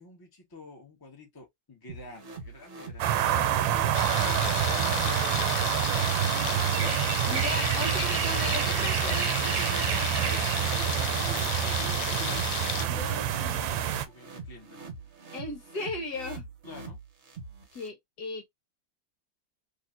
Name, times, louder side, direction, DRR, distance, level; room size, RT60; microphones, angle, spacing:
voice 1, 0.0-3.2 4.8-8.6 10.9-12.5 12.9-14.8 16.6-17.0, left 4 dB, 15° left, 1.1 m, -48 dB
sound 1, 1.9-17.9, right 3 dB, 45° right, 1.1 m, -44 dB
sound 2, 3.0-14.1, right 10 dB, 80° right, 1.3 m, -27 dB
sound 3, 3.9-12.8, left 11 dB, 90° left, 1.4 m, -34 dB
voice 2, 7.3-10.5 12.8-13.9 15.3-16.5 17.7-18.4, left 2 dB, 60° left, 1.5 m, -37 dB
4.0 x 3.0 x 2.6 m
omnidirectional pair, 2.0 m